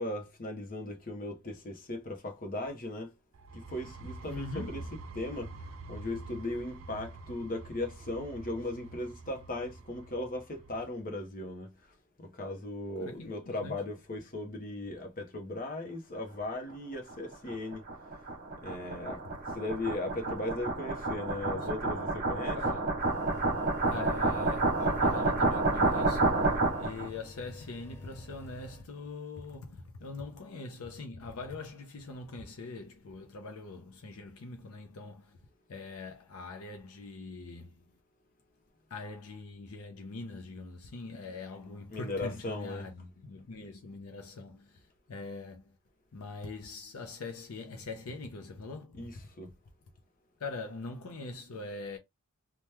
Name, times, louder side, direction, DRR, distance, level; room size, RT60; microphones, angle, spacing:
voice 1, 0.0-3.1 3.5-4.8 5.1-5.5 5.9-17.8 18.6-19.2 19.5-22.6 41.9-42.9 48.9-49.5, left 2 dB, 40° left, 0.8 m, -37 dB
sound 1, 3.3-11.0, right 2 dB, 60° right, 0.5 m, -47 dB
voice 2, 4.3-4.8 13.0-13.8 21.5-21.7 22.5-23.0 23.8-35.4 35.7-37.9 38.9-45.8 46.1-49.3 50.4-52.0, left 3 dB, 65° left, 0.6 m, -43 dB
sound 2, 17.1-27.1, right 2 dB, 45° right, 0.9 m, -29 dB
sound 3, 23.0-28.8, left 2 dB, 10° left, 0.4 m, -49 dB
2.9 x 2.2 x 3.3 m
head